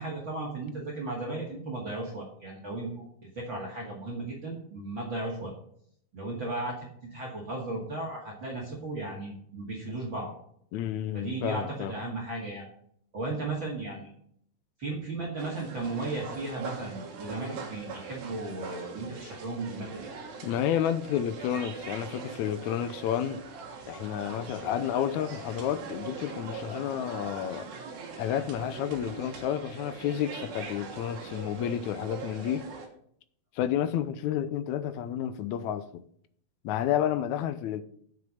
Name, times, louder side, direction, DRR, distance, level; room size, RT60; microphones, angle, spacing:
voice 1, 0.0-5.5 6.1-10.3 11.1-12.7 13.1-14.1 14.8-20.1, right 2 dB, 40° right, 2.5 m, -35 dB
voice 2, 10.7-11.9 20.4-23.4 23.9-27.7 28.2-32.7 33.5-36.0 36.6-37.8, left 10 dB, 80° left, 1.8 m, -30 dB
sound 1, 15.4-32.9, right 4 dB, 65° right, 2.7 m, -42 dB
8.4 x 6.9 x 6.4 m
omnidirectional pair, 3.8 m